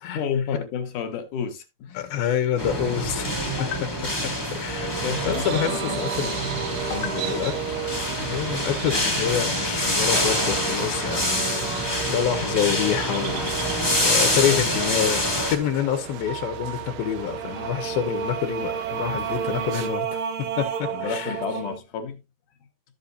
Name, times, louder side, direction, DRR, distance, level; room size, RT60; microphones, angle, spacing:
voice 1, 0.1-2.1 3.6-3.8 4.8-7.5 8.3-8.4 20.9-22.2, left 7 dB, 65° left, 2.6 m, -32 dB
voice 2, 1.9-3.3 4.6-4.9 5.2-6.4 7.3-7.5 8.2-20.2 20.6-20.7 21.0-21.4, left 9 dB, 85° left, 3.0 m, -27 dB
sound 1, 2.6-15.6, left 1 dB, 10° left, 1.1 m, -26 dB
sound 2, 3.2-21.8, right 7 dB, 85° right, 1.1 m, -34 dB
sound 3, 5.1-19.9, right 8 dB, 65° right, 1.8 m, -37 dB
13.0 x 8.0 x 2.6 m
omnidirectional pair, 4.2 m